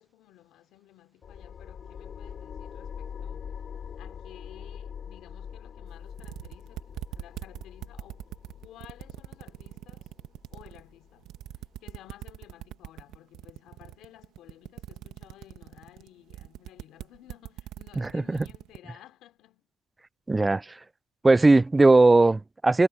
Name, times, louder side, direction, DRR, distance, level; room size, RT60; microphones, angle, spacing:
voice 1, 0.0-3.6 4.0-8.3 8.6-10.1 10.5-11.3 11.5-19.7, left 14 dB, 75° left, 3.4 m, -54 dB
sound 1, 1.2-12.3, left 7 dB, 45° left, 4.3 m, -43 dB
sound 2, 5.9-6.0 6.2-10.8 11.2-18.8, right 13 dB, 75° right, 1.4 m, -41 dB
voice 2, 20.3-20.8 21.2-22.9, right 2 dB, 15° right, 0.4 m, -19 dB
cardioid pair, 125°, 0 cm